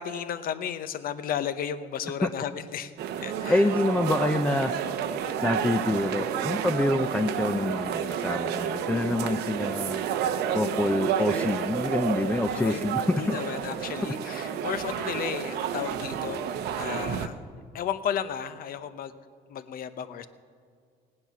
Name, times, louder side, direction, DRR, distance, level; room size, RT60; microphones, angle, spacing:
voice 1, 0.0-2.9 3.2-3.7 12.5-12.8 13.2-17.4 17.7-19.2 19.5-20.3, left 9 dB, 60° left, 12 dB, 0.8 m, -33 dB
sound 1, 3.0-17.3, right 8 dB, 80° right, 0.8 m, -30 dB
voice 2, 3.5-4.7 5.4-10.1 10.5-13.4, left 2 dB, 10° left, 7 dB, 0.5 m, -26 dB
17.5 x 9.8 x 5.9 m, 2.2 s
cardioid pair, 110°, 17 cm